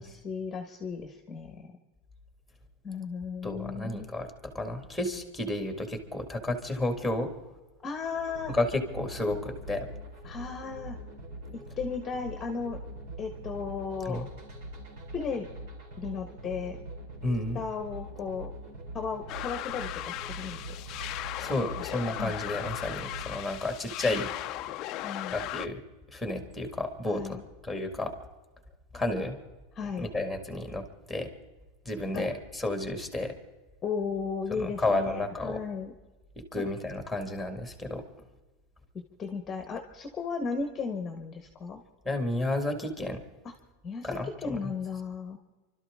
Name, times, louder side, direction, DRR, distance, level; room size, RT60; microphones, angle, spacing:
voice 1, 0.0-1.7 2.8-4.1 7.8-8.5 10.2-11.0 11.5-12.8 13.2-14.2 15.1-15.5 16.0-16.8 17.5-18.5 18.9-20.6 20.9-21.0 21.8-21.9 22.2-22.3 24.1-24.3 25.0-25.4 27.1-27.4 29.7-30.1 32.1-32.2 33.8-35.9 36.5-36.6 38.9-41.8 43.8-44.1 44.4-45.4, left 5 dB, 15° left, 5 dB, 1.2 m, -35 dB
voice 2, 3.4-4.3 4.5-7.3 8.5-9.9 14.1-14.3 17.2-17.6 21.4-24.3 25.3-25.8 26.1-28.1 28.9-29.4 30.0-31.3 31.9-33.3 34.5-35.6 36.4-38.0 42.0-43.2 44.0-44.7, left 2 dB, ahead, 6 dB, 1.9 m, -32 dB
sound 1, 8.1-23.4, equal, 55° right, 4.4 m, -43 dB
sound 2, 19.3-25.7, left 14 dB, 35° left, 0.6 m, -37 dB
29.5 x 12.5 x 3.6 m, 1.2 s
supercardioid pair, 170°, 0 cm